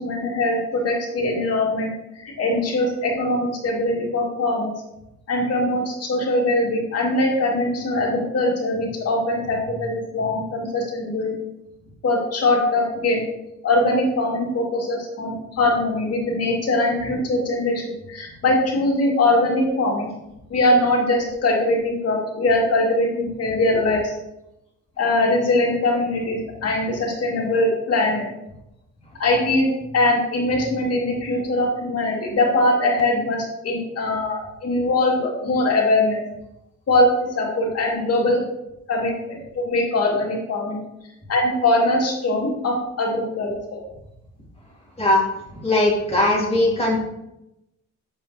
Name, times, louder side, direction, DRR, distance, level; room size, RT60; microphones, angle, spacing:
voice 1, 0.0-4.7 5.3-11.3 12.0-13.2 13.6-20.1 20.5-24.1 25.0-28.2 29.1-36.2 36.9-37.1 37.4-38.4 38.9-40.8 41.3-43.8, left 2 dB, 55° left, -1 dB, 2.1 m, -22 dB
voice 2, 45.6-47.0, left 1 dB, 20° left, -4 dB, 2.4 m, -19 dB
7.4 x 5.2 x 2.8 m, 0.88 s
cardioid pair, 90°, 30 cm